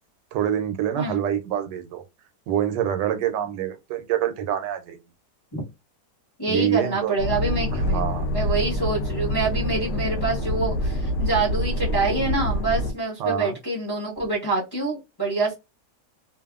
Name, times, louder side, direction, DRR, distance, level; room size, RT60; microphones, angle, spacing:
voice 1, 0.3-2.0 2.5-5.0 6.5-7.2 7.7-8.3 13.2-13.6, right 10 dB, 90° right, 1.2 m, -26 dB
voice 2, 6.4-8.1 8.3-15.5, right 3 dB, 20° left, 0.7 m, -26 dB
sound 1, 7.2-12.9, equal, 70° left, 0.9 m, -26 dB
2.6 x 2.5 x 2.3 m
omnidirectional pair, 1.8 m